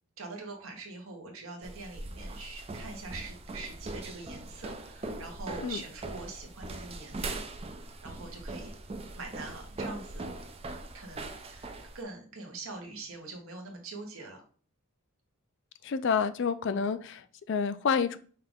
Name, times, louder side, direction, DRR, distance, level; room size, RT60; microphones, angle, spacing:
voice 1, 0.2-7.4 8.0-8.7 9.1-10.3 10.9-14.4, right 3 dB, 65° right, 2 dB, 1.1 m, -43 dB
sound 1, 1.6-12.0, right 2 dB, 25° right, 0.4 m, -41 dB
voice 2, 15.8-18.2, left 6 dB, 55° left, 13 dB, 0.3 m, -29 dB
5.6 x 2.4 x 3.4 m, 0.43 s
head